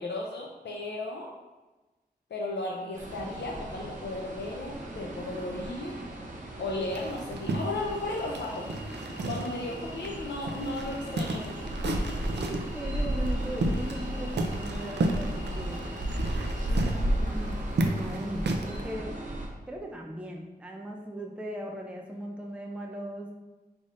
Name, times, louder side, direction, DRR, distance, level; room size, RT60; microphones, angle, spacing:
voice 1, 0.0-1.3 2.3-6.0 6.6-8.7 9.2-12.2 16.7-17.1, left 2 dB, 90° left, -1 dB, 0.5 m, -35 dB
sound 1, 2.9-19.5, right 1 dB, 50° right, 0.9 m, -34 dB
sound 2, 6.9-9.7 10.0-10.1 10.5-12.7 13.3-14.1 14.3-18.8, right 2 dB, 80° right, 0.4 m, -32 dB
sound 3, 7.4-17.0, left 1 dB, 35° left, 0.8 m, -51 dB
voice 2, 12.3-15.9 16.7-19.2 19.7-23.3, equal, 5° right, 0 dB, 0.5 m, -38 dB
5.2 x 3.4 x 2.6 m, 1.1 s
wide cardioid pair, 80°, 17 cm